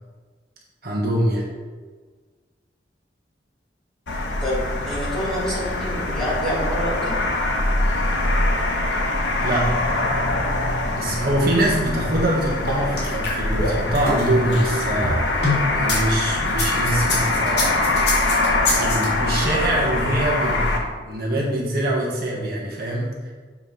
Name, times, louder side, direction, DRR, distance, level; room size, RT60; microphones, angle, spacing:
voice 1, 0.8-1.5 9.4-9.7 10.9-17.9 18.3-23.3, right 1 dB, 55° right, -3 dB, 1.4 m, -24 dB
sound 1, 4.1-20.8, left 2 dB, 85° left, 1.0 m, -23 dB
voice 2, 4.4-7.2, equal, ahead, -8 dB, 2.1 m, -27 dB
sound 2, 12.7-16.0 16.5-19.1, left 2 dB, 65° left, 2.2 m, -25 dB
7.3 x 5.4 x 4.0 m, 1.4 s
head